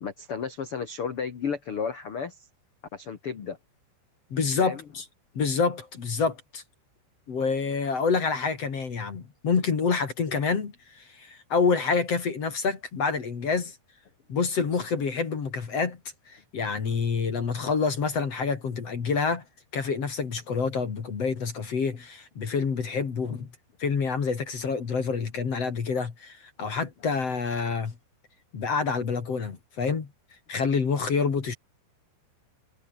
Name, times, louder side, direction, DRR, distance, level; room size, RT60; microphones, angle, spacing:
voice 1, 0.0-2.5 2.9-3.6 4.6-4.8, left 6 dB, 85° left, 1.2 m, -33 dB
voice 2, 4.3-5.0 5.3-6.6 7.3-13.8 14.3-16.0 16.3-19.4 19.7-23.5 23.8-27.9 28.5-30.1 30.5-31.5, left 5 dB, 40° left, 3.0 m, -27 dB
omnidirectional pair, 5.5 m